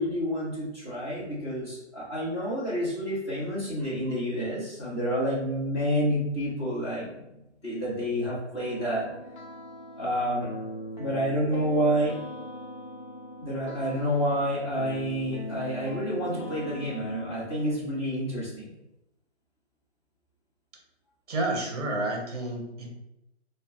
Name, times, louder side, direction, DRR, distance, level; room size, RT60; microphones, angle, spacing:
voice 1, 0.0-7.3 7.6-9.1 10.0-10.5 11.0-12.2 13.4-18.7, equal, 25° left, -10 dB, 1.2 m, -29 dB
sound 1, 8.5-17.7, equal, 40° left, 0.6 m, -40 dB
voice 2, 21.3-22.9, right 2 dB, 35° right, 0 dB, 0.7 m, -30 dB
2.6 x 2.2 x 3.6 m, 0.89 s
hypercardioid pair, 175°, 35 cm